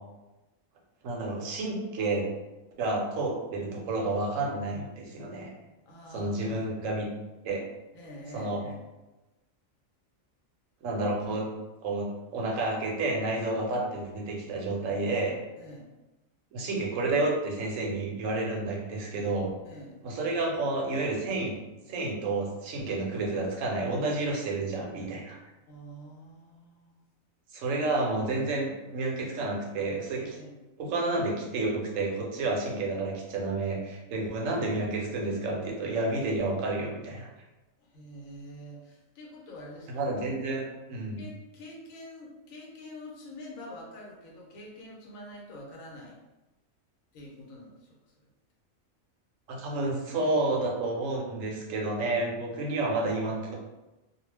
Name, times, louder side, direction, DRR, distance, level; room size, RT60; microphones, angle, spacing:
voice 1, 1.0-2.3 2.8-5.5 6.1-7.1 7.4-7.6 8.3-8.6 10.8-11.5 11.8-15.4 16.5-19.5 20.0-21.6 21.9-25.4 27.5-30.4 30.8-37.3 39.9-40.6 40.9-41.2 49.5-53.6, right 2 dB, 75° right, -1 dB, 1.0 m, -30 dB
voice 2, 5.9-6.6 7.9-8.8 15.6-15.9 19.6-20.0 25.7-27.1 30.2-30.6 37.8-40.1 41.2-46.2 47.1-48.1, left 1 dB, 80° left, -2 dB, 1.1 m, -46 dB
2.3 x 2.2 x 3.2 m, 1.1 s
omnidirectional pair, 1.4 m